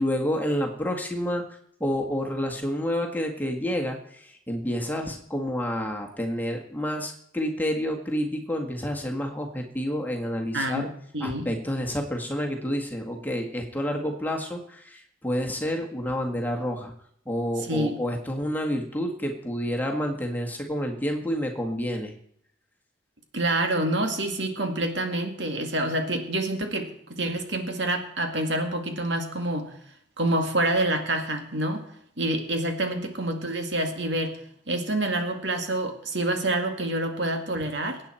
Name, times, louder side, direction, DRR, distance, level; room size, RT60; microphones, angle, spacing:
voice 1, 0.0-1.4 1.8-10.9 11.2-16.9 17.3-22.1, equal, 10° left, 1 dB, 1.7 m, -29 dB
voice 2, 10.5-10.9 11.1-11.5 17.6-18.0 23.3-29.7 30.2-31.8 32.2-34.4 34.7-38.0, right 1 dB, 75° right, 4 dB, 2.1 m, -27 dB
23.0 x 9.0 x 4.4 m, 0.69 s
head